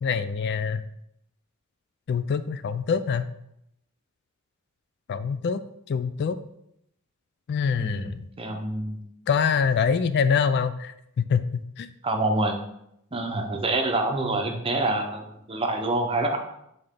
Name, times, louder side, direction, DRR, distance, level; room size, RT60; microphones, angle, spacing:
voice 1, 0.0-0.8 2.1-3.3 5.1-5.6 5.9-6.4 7.5-8.2 9.3-11.9, left 6 dB, 50° left, 12 dB, 0.3 m, -25 dB
voice 2, 7.8-9.0 12.0-12.6 13.1-16.4, right 2 dB, 25° right, 4 dB, 0.7 m, -26 dB
7.7 x 3.8 x 3.7 m, 0.79 s
head